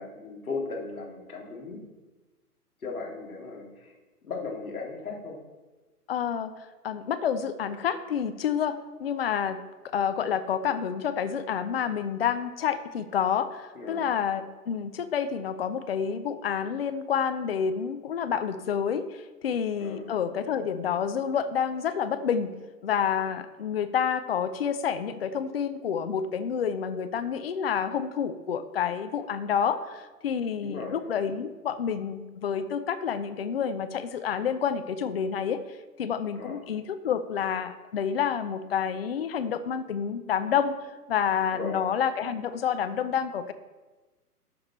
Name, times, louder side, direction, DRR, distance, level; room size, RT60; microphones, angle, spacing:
voice 1, 0.0-1.8 2.8-3.9 4.2-5.4 13.7-14.1 19.8-20.1 30.6-31.0 36.3-36.6 41.5-41.8, left 4 dB, 65° left, 0 dB, 2.7 m, -37 dB
voice 2, 6.1-22.5 22.8-40.7 41.1-43.5, left 7 dB, 40° left, 11 dB, 0.6 m, -29 dB
12.0 x 6.7 x 4.3 m, 1.2 s
figure-of-eight pair, 125°, 47 cm